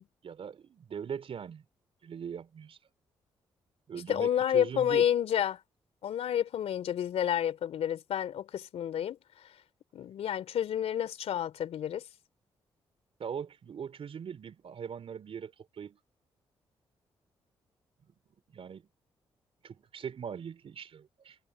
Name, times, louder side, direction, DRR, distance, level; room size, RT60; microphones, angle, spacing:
voice 1, 0.2-1.6 2.0-2.8 3.9-5.0 13.2-16.0 18.5-18.8 19.6-21.4, right 7 dB, 60° right, 3.4 m, -41 dB
voice 2, 4.1-5.6 6.0-9.2 9.9-12.0, left 10 dB, 70° left, 3.1 m, -29 dB
hypercardioid pair, 45°, 11 cm